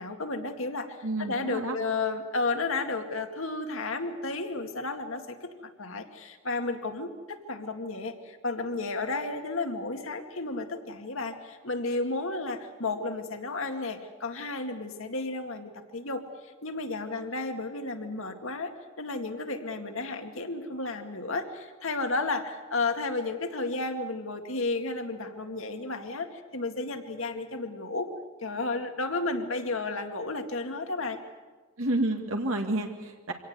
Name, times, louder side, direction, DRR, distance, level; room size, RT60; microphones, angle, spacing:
voice 1, 0.0-5.5 5.8-28.1 28.4-31.2, left 3 dB, 70° left, 5 dB, 2.1 m, -32 dB
voice 2, 1.0-1.8 31.8-33.3, right 1 dB, 70° right, 3 dB, 1.9 m, -29 dB
25.0 x 18.0 x 8.0 m, 1.4 s
head